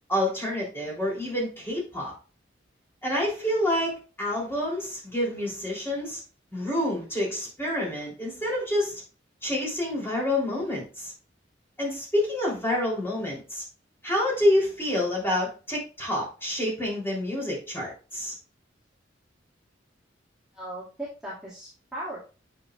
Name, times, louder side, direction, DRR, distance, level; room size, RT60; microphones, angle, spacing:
voice 1, 0.1-2.1 3.0-6.2 6.5-9.0 9.4-11.1 11.8-13.6 14.0-18.3, left 1 dB, 15° left, -4 dB, 3.5 m, -28 dB
voice 2, 20.5-22.3, right 1 dB, 5° right, -9 dB, 2.2 m, -38 dB
8.6 x 6.2 x 2.5 m, 0.34 s
head